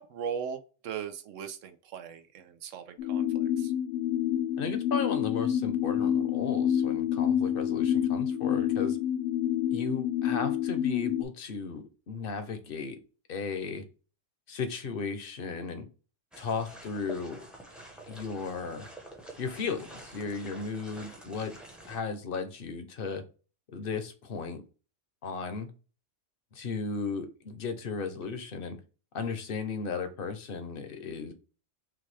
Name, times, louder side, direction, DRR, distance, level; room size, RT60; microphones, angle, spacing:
voice 1, 0.0-3.7, right 7 dB, 85° right, 9 dB, 1.0 m, -39 dB
sound 1, 3.0-11.2, left 10 dB, 85° left, 1.0 m, -28 dB
voice 2, 4.6-9.0 9.7-13.0 13.3-13.8 14.5-15.9 16.4-17.4 18.1-18.9 19.4-21.5 21.9-23.2 23.7-24.6 25.2-25.7 26.5-28.8 29.1-31.3, left 5 dB, 55° left, 8 dB, 0.9 m, -35 dB
sound 2, 16.3-22.0, right 2 dB, ahead, 0.7 m, -48 dB
6.0 x 2.3 x 3.3 m, 0.35 s
omnidirectional pair, 1.3 m